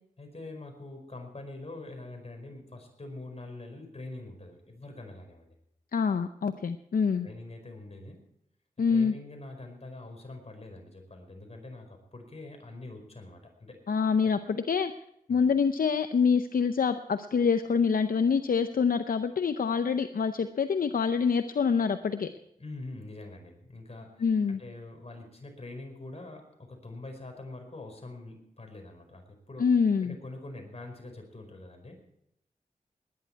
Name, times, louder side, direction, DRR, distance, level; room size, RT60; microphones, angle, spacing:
voice 1, 0.2-5.5 7.2-8.2 8.9-13.8 14.2-14.3 15.3-15.4 22.6-29.7 30.0-32.0, left 2 dB, 45° left, 4 dB, 4.9 m, -44 dB
voice 2, 5.9-7.3 8.8-9.1 13.9-14.9 15.3-22.3 24.2-24.6 29.6-30.1, left 6 dB, 75° left, 10 dB, 0.6 m, -26 dB
19.5 x 10.5 x 4.7 m, 0.77 s
cardioid pair, 45°, 15 cm